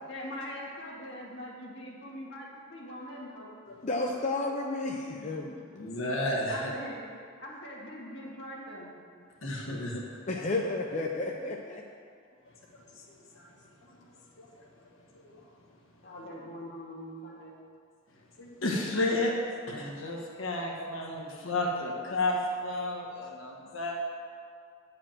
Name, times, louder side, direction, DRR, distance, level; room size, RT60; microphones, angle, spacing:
voice 1, 0.1-3.5 5.1-5.6 6.5-7.1 7.4-8.9 12.4-12.5 16.0-17.5, equal, 60° left, -3 dB, 2.0 m, -42 dB
voice 2, 3.8-5.5 10.3-11.8, left 2 dB, 35° left, 0 dB, 0.6 m, -31 dB
voice 3, 5.7-6.7 9.4-10.1 13.3-13.5 13.8-13.9 14.4-14.7 15.1-15.3 18.4-19.3 19.7-24.0, left 1 dB, 80° left, -1 dB, 1.3 m, -32 dB
10.0 x 5.0 x 7.5 m, 2.2 s
head